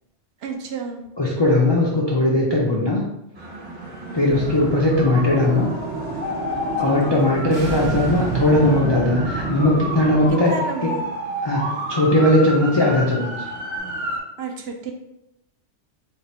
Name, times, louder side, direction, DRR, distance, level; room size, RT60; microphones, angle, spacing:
voice 1, 0.4-1.1 4.1-4.4 6.8-7.3 10.5-11.1 14.4-14.9, right 5 dB, 65° right, 3 dB, 0.8 m, -32 dB
voice 2, 1.2-3.0 4.1-5.7 6.8-10.5 10.8-10.9 11.4-13.3, left 1 dB, 40° left, -3 dB, 0.4 m, -19 dB
sound 1, 3.4-14.2, right 2 dB, 45° right, 1.1 m, -32 dB
sound 2, 4.3-10.3, right 4 dB, 90° right, 1.0 m, -28 dB
sound 3, 5.6-5.7 6.2-7.1 8.2-8.8 12.5-12.6 13.2-13.8, left 7 dB, 75° left, 0.9 m, -32 dB
3.4 x 2.5 x 4.1 m, 0.87 s
omnidirectional pair, 1.2 m